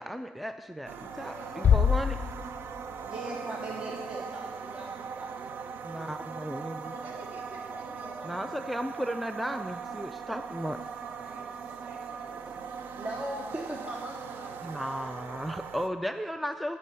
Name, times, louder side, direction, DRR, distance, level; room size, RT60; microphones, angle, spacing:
voice 1, 0.0-0.9 1.2-2.1 5.8-6.9 8.2-10.8 14.6-16.8, equal, ahead, 9 dB, 0.3 m, -35 dB
sound 1, 0.9-15.9, right 6 dB, 70° right, 0.5 m, -40 dB
voice 2, 1.0-1.9 6.8-8.6 11.0-12.5, right 1 dB, 50° right, -1 dB, 3.1 m, -47 dB
sound 2, 1.6-3.6, left 7 dB, 40° left, 0.6 m, -26 dB
voice 3, 3.0-6.1 12.5-12.7 12.9-15.0 15.3-15.4, right 1 dB, 30° right, 0 dB, 1.0 m, -40 dB
12.5 x 5.4 x 5.6 m, 1.5 s
cardioid pair, 95°, 4 cm